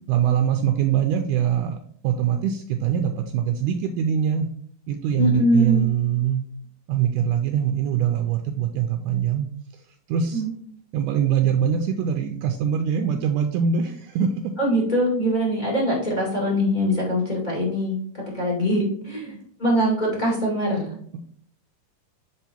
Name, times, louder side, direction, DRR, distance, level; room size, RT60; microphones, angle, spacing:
voice 1, 0.1-1.8 2.0-4.5 4.9-6.5 6.9-9.5 10.1-10.4 10.9-14.5 19.3-19.4, right 8 dB, 80° right, 5 dB, 2.0 m, -23 dB
voice 2, 5.2-5.9 10.3-10.5 14.6-18.0 18.3-20.9, equal, 20° left, -3 dB, 1.5 m, -22 dB
6.1 x 4.6 x 4.3 m, 0.62 s
omnidirectional pair, 3.9 m